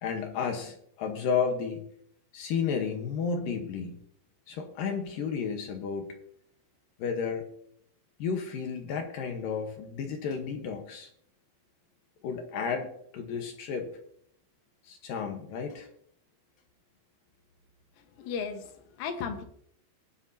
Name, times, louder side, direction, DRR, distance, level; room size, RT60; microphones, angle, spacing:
voice 1, 0.0-1.8 2.3-4.0 4.5-6.1 7.0-7.4 8.2-11.1 12.2-13.9 14.8-15.9, left 6 dB, 70° left, 4 dB, 2.2 m, -32 dB
voice 2, 18.0-19.4, left 6 dB, 90° left, 6 dB, 3.9 m, -36 dB
20.5 x 9.2 x 2.8 m, 0.68 s
omnidirectional pair, 5.5 m